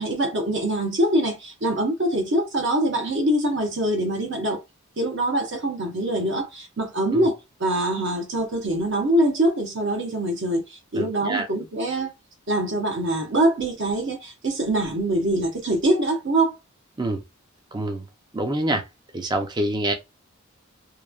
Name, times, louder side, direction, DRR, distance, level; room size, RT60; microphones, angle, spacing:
voice 1, 0.0-4.6 5.0-12.1 12.5-16.6, right 1 dB, 55° right, 0.8 m, -24 dB
voice 2, 10.9-11.5 17.0-17.2 17.7-18.0 18.3-18.9 19.1-19.9, right 1 dB, 20° right, 0.4 m, -26 dB
3.0 x 2.1 x 2.3 m
head